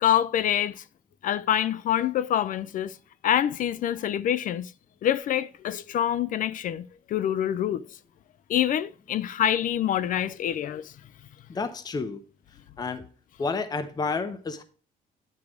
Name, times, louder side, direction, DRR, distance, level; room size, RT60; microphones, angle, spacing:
voice 1, 0.0-0.8 1.2-3.0 3.2-4.7 5.0-7.8 8.5-10.9, left 10 dB, 50° left, 0.4 m, -26 dB
voice 2, 11.5-12.2 12.8-13.0 13.4-14.6, left 4 dB, 25° left, 0.7 m, -30 dB
9.7 x 4.6 x 4.7 m
cardioid pair, 110°, 17 cm